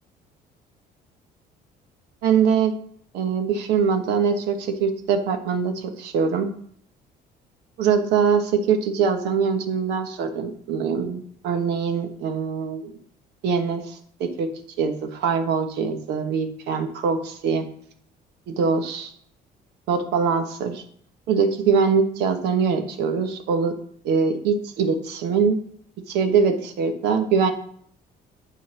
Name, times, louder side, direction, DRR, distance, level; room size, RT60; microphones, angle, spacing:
voice 1, 2.2-2.7 3.1-6.5 7.8-13.0 13.4-14.5 14.8-17.6 18.5-19.1 19.9-20.8 21.3-23.7 24.0-25.6 26.1-27.5, right 6 dB, 85° right, 6 dB, 1.2 m, -23 dB
9.4 x 4.0 x 6.0 m, 0.63 s
cardioid pair, 110°, 17 cm